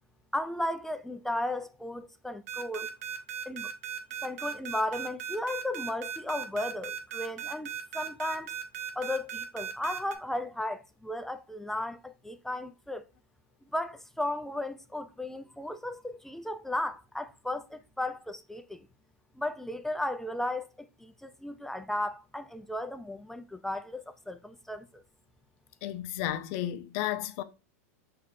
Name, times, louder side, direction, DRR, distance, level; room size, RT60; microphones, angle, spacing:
voice 1, 0.3-2.9 3.5-3.7 4.2-8.5 9.0-13.0 13.7-18.8 19.4-24.9, left 1 dB, 5° left, 0.4 m, -35 dB
sound 1, 2.5-10.2, right 8 dB, 75° right, 1.1 m, -37 dB
voice 2, 25.8-27.4, left 13 dB, 55° left, 0.6 m, -33 dB
5.6 x 3.2 x 2.5 m
supercardioid pair, 125°, 8 cm